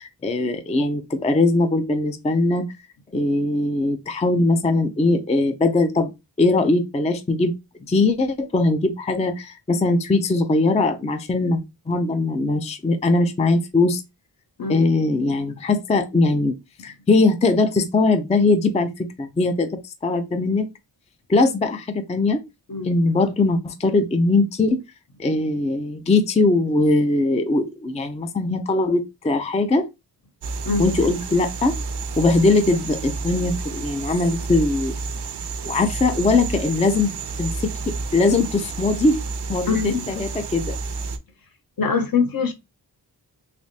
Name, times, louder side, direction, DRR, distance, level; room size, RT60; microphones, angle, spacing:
voice 1, 0.0-2.7 3.1-6.1 6.4-7.5 7.8-11.6 11.9-14.0 14.7-16.5 16.8-20.7 21.3-22.4 22.8-24.8 25.2-29.9 30.8-31.7 32.2-34.9 35.6-37.1 37.4-39.2 39.5-40.8, left 3 dB, 15° left, 0.4 m, -20 dB
sound 1, 30.4-41.2, right 4 dB, 70° right, 0.6 m, -31 dB
voice 2, 39.7-40.0 41.8-42.5, left 5 dB, 55° left, 0.7 m, -23 dB
3.3 x 3.1 x 2.7 m
wide cardioid pair, 95°, 42 cm